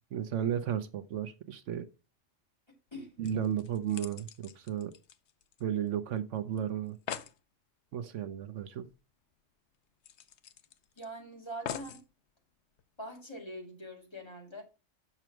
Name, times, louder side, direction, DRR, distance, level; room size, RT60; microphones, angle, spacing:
voice 1, 0.1-1.9 3.2-4.9 5.6-7.0 7.9-8.9, right 9 dB, 75° right, 1.0 m, -34 dB
sound 1, 2.9-3.0 3.2-5.9 6.2-6.3 6.6-6.7 6.9-7.4 8.9-9.0 9.3-9.4 10.0-11.1 11.7-12.1 12.8-12.9, left 8 dB, 65° left, 0.9 m, -43 dB
voice 2, 11.0-12.0 13.0-14.6, equal, 20° left, 2.1 m, -43 dB
7.1 x 5.8 x 4.5 m
omnidirectional pair, 1.3 m